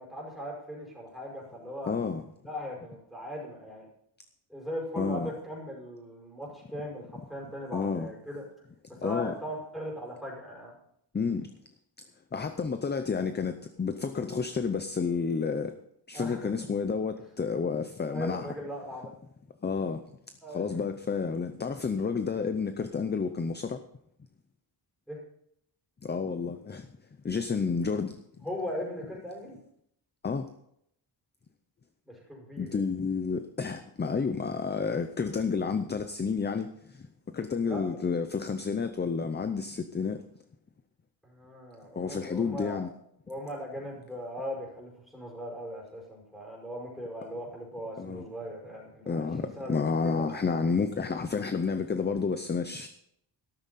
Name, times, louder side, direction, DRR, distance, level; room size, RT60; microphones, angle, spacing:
voice 1, 0.0-1.9 2.4-3.9 4.5-8.4 9.0-10.7 16.1-16.4 18.0-19.1 20.4-20.8 25.1-25.2 28.4-29.6 32.1-32.8 37.6-37.8 41.2-42.8 43.3-49.3 49.6-50.4, equal, ahead, 5.4 m, -39 dB
voice 2, 1.9-2.2 5.0-5.3 7.7-8.1 9.0-9.3 11.1-11.5 12.3-15.7 16.1-18.5 19.6-20.0 20.5-23.8 26.0-26.9 27.2-28.2 30.2-30.5 32.6-37.1 37.3-40.2 42.0-42.9 48.0-48.3 49.1-52.9, left 5 dB, 20° left, 0.6 m, -30 dB
13.0 x 13.0 x 4.1 m
wide cardioid pair, 170°, 46 cm